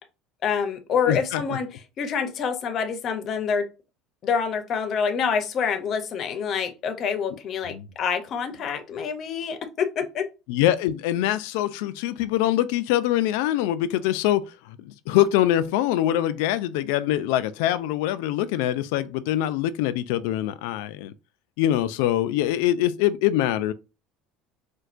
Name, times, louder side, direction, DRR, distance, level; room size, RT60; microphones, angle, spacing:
voice 1, 0.4-1.7 2.0-3.7 4.2-10.3, left 6 dB, 35° left, 0.5 m, -26 dB
voice 2, 1.1-1.4 7.6-7.9 10.5-21.1 21.6-23.7, left 13 dB, 85° left, 0.3 m, -24 dB
4.4 x 2.2 x 2.4 m
cardioid pair, 155°, 0 cm